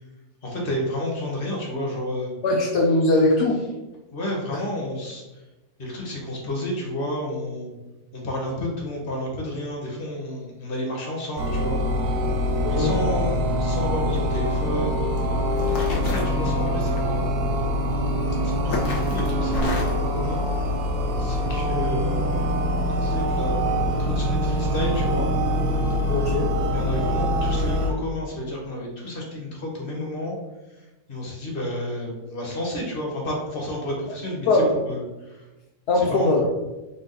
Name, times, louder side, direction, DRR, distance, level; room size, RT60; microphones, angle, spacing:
voice 1, 0.4-2.3 4.1-5.2 5.8-7.7 8.1-11.8 12.7-15.0 15.7-17.5 18.4-20.4 21.2-23.5 24.0-25.3 26.7-30.3 30.8-34.5 34.8-35.4 35.9-36.3, left 1 dB, 40° left, -1 dB, 1.1 m, -31 dB
voice 2, 2.4-3.6 12.6-12.9 26.1-26.5 34.5-34.8 35.9-36.5, left 2 dB, 65° left, -1 dB, 0.6 m, -20 dB
sound 1, 11.4-27.9, equal, 85° right, 1.1 m, -24 dB
sound 2, 14.1-14.4 15.2-15.3 15.6-17.0 18.1-18.3 18.7-20.0, left 2 dB, 90° left, 1.3 m, -30 dB
4.0 x 2.4 x 3.8 m, 1.1 s
omnidirectional pair, 1.6 m